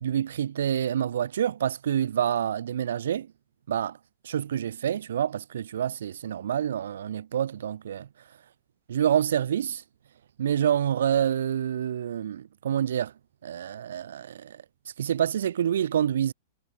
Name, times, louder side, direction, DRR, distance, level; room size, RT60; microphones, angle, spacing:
voice 1, 0.0-3.3 3.7-4.0 4.2-8.1 8.9-9.8 10.4-13.1 13.4-14.6 15.0-16.3, right 9 dB, 80° right, 2.3 m, -27 dB
supercardioid pair, 175°, 0 cm